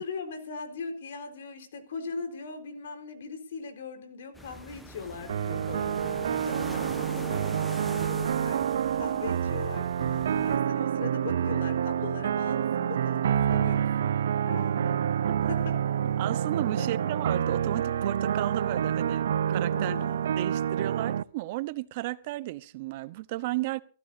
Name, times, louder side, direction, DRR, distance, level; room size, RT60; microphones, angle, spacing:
voice 1, 0.0-14.1 14.5-15.0 15.5-15.8 16.8-16.9 19.7-20.3, left 4 dB, 70° left, 4.2 m, -40 dB
sound 1, 4.3-10.6, equal, 5° left, 1.3 m, -44 dB
sound 2, 5.3-21.2, right 9 dB, 70° right, 0.6 m, -28 dB
voice 2, 16.2-20.0 20.4-23.8, right 17 dB, 45° right, 0.9 m, -34 dB
24.0 x 15.0 x 2.7 m
hypercardioid pair, 145°, 0 cm